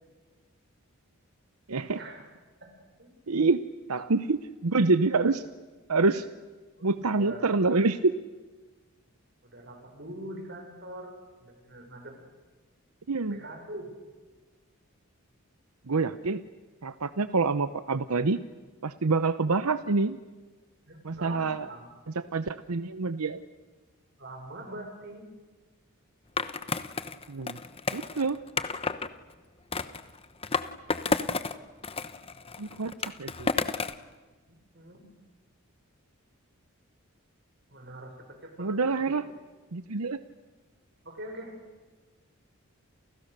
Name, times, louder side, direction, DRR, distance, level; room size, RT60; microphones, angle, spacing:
voice 1, 1.7-2.0 3.3-3.6 3.9-5.4 5.9-6.3 6.8-8.1 13.1-13.4 15.9-16.4 16.8-18.4 18.8-20.2 21.0-21.7 22.3-23.4 27.3-27.6 27.9-28.4 32.6-32.9 33.2-33.5 38.6-39.2 39.7-40.2, right 3 dB, 85° right, 12 dB, 0.9 m, -26 dB
voice 2, 6.8-7.5 9.4-12.2 13.3-13.9 20.9-21.9 24.2-25.2 34.5-35.0 37.7-39.2 41.0-41.6, right 1 dB, 50° right, 4 dB, 6.3 m, -43 dB
Skateboard, 26.4-29.1 29.7-31.6 31.8-34.0, left 4 dB, 25° left, 1.0 m, -31 dB
29.5 x 29.0 x 6.8 m, 1.3 s
head